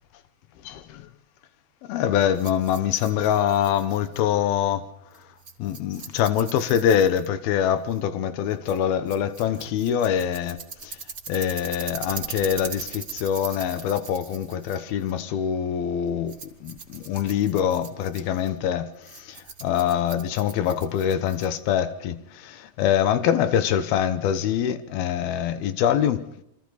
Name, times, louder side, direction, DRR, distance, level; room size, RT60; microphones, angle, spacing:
voice 1, 0.6-1.1 1.9-4.9 5.6-11.0 11.3-26.2, left 9 dB, 85° left, 3.0 m, -24 dB
Rattle, 2.2-21.8, right 5 dB, 45° right, 0.9 m, -41 dB
28.5 x 24.0 x 4.1 m
omnidirectional pair, 4.2 m